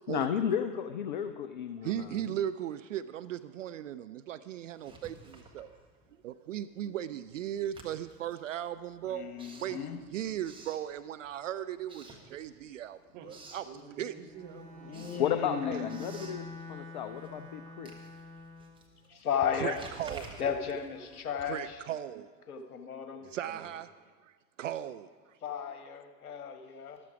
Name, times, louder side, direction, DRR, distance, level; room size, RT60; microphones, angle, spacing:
voice 1, 0.1-2.2 15.2-17.9, left 8 dB, 35° left, 10 dB, 0.4 m, -33 dB
voice 2, 1.8-5.7 6.2-9.3 9.6-13.0 13.2-13.6 14.0-14.1 19.5-20.4 21.4-22.3 23.2-23.9 24.2-25.4, right 11 dB, 55° right, 12 dB, 0.5 m, -37 dB
Writing, 4.7-6.3 6.6-11.4 11.8-12.8 13.1-13.7 14.2-21.8, right 2 dB, 10° right, 1.5 m, -52 dB
voice 3, 9.1-10.0 14.8-16.1 19.1-19.8 20.4-21.8 22.5-23.2 25.4-27.0, left 7 dB, 60° left, 7 dB, 1.4 m, -35 dB
voice 4, 13.1-15.2 23.2-23.7, right 5 dB, 40° right, 3 dB, 1.8 m, -50 dB
Bowed string instrument, 14.3-18.8, left 2 dB, 90° right, 1.5 m, -47 dB
13.5 x 12.5 x 4.8 m, 1.5 s
figure-of-eight pair, 95°, 49 cm